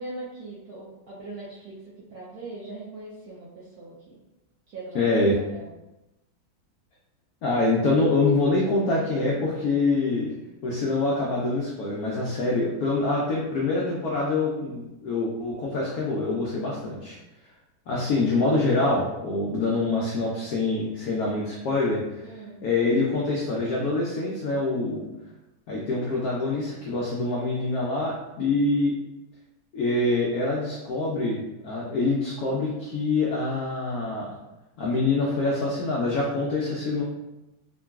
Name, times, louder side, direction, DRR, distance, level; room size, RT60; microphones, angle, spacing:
voice 1, 0.0-1.7 2.1-4.1 4.7-5.7 22.2-22.7, right 2 dB, 75° right, -6 dB, 0.9 m, -40 dB
voice 2, 4.9-5.4 7.4-10.3 10.6-17.2 17.9-22.2 22.6-25.0 25.7-28.9 29.7-34.3 34.8-37.0, left 2 dB, 90° left, -3 dB, 0.8 m, -25 dB
3.7 x 2.2 x 2.3 m, 0.98 s
omnidirectional pair, 2.1 m